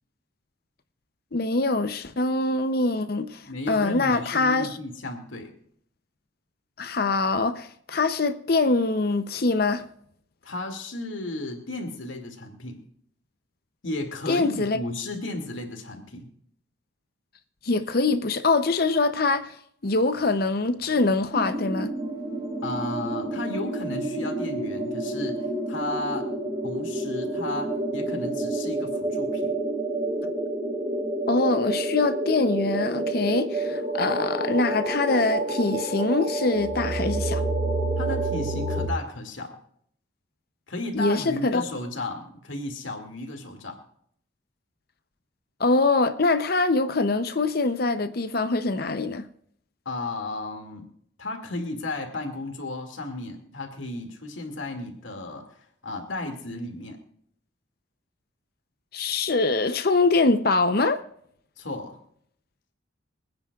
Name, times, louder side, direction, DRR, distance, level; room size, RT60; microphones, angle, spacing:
voice 1, 1.3-4.8 6.8-9.8 14.3-14.8 17.6-19.5 19.8-21.9 30.2-30.3 31.3-37.4 40.9-41.6 45.6-49.3 58.9-61.0, left 3 dB, 50° left, 0.7 m, -24 dB
voice 2, 3.4-5.5 10.4-12.8 13.8-16.3 22.6-26.3 26.6-29.5 38.0-39.6 40.7-43.8 49.9-50.9 51.2-57.0 61.6-62.0, left 2 dB, 80° left, 2.3 m, -34 dB
sound 1, 21.3-38.9, right 2 dB, 25° right, 4.3 m, -29 dB
26.0 x 9.6 x 2.4 m
head